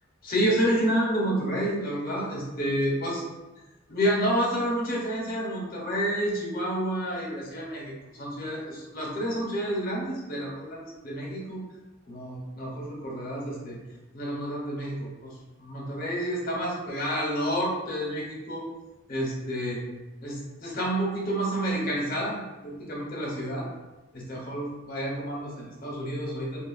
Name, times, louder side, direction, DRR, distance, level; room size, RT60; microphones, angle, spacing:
voice 1, 0.2-3.2 3.9-11.6 12.1-13.8 14.1-18.6 19.1-19.8 20.2-23.7 24.1-26.6, equal, 50° left, -3 dB, 0.8 m, -29 dB
2.9 x 2.3 x 2.4 m, 1.1 s
head